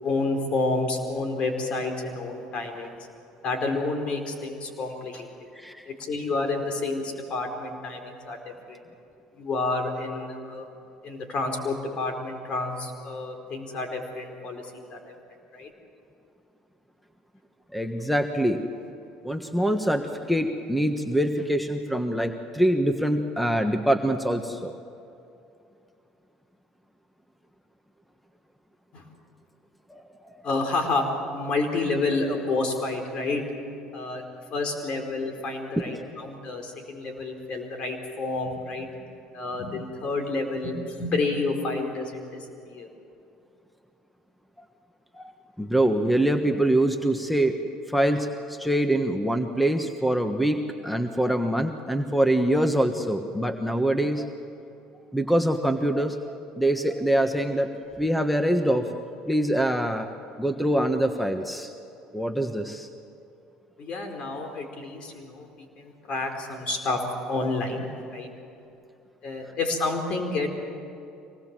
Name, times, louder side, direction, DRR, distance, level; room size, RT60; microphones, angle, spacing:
voice 1, 0.0-3.0 3.4-5.3 5.9-8.8 9.3-10.7 11.0-15.1 15.5-15.7 28.9-29.0 30.4-31.0 31.3-33.4 33.9-34.2 34.5-39.0 39.3-42.9 63.8-67.0 67.3-67.9 68.1-68.3 69.2-70.5, left 3 dB, 55° left, 4 dB, 4.6 m, -29 dB
voice 2, 5.5-5.8 17.7-18.6 19.2-24.7 29.9-30.0 30.3-30.4 35.8-36.1 45.1-45.3 45.6-47.6 47.9-54.3 55.1-57.7 58.0-58.9 59.3-60.1 60.4-61.7 62.1-62.9, right 1 dB, ahead, 6 dB, 1.4 m, -24 dB
25.0 x 19.5 x 7.6 m, 2.6 s
supercardioid pair, 80°, 2 cm